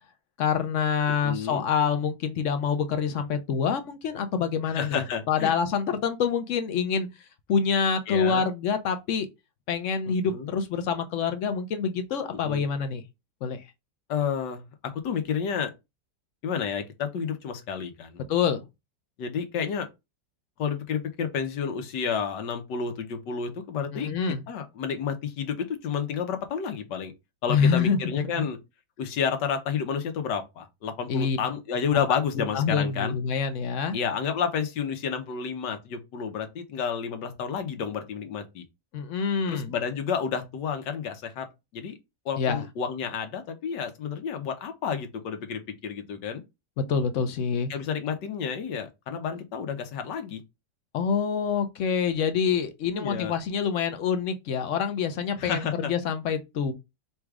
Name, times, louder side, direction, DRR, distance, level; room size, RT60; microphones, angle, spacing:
voice 1, 0.4-7.1 7.5-9.3 9.7-13.0 13.4-13.6 18.3-18.6 23.9-24.4 27.5-28.0 28.4-28.5 31.1-31.4 32.3-34.0 38.9-39.7 42.4-42.6 46.8-47.7 50.9-56.7, left 6 dB, 60° left, 0.8 m, -26 dB
voice 2, 1.2-1.6 4.7-5.5 8.1-8.4 10.1-10.5 12.4-12.6 14.1-15.7 16.4-18.2 19.2-19.9 20.6-24.1 24.5-27.1 27.4-28.6 29.0-33.1 33.9-38.6 39.5-41.5 41.7-41.9 42.2-46.4 47.7-50.4 52.9-53.3 55.4-55.9, left 7 dB, 85° left, 1.4 m, -30 dB
4.0 x 2.3 x 4.7 m
omnidirectional pair, 1.8 m